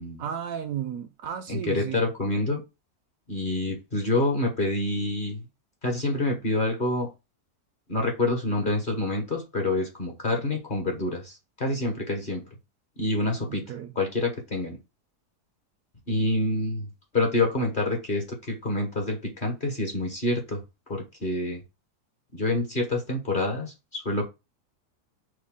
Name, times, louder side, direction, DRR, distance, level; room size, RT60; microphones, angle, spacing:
voice 1, 0.2-2.0 13.5-13.9, right 9 dB, 70° right, 0.9 m, -34 dB
voice 2, 1.5-2.6 3.3-5.4 5.8-7.1 7.9-12.4 13.0-13.6 14.0-14.8 16.1-16.9 17.1-20.6 20.9-21.6 22.3-24.3, left 2 dB, 40° left, 1.0 m, -27 dB
6.2 x 2.2 x 3.6 m
omnidirectional pair, 1.7 m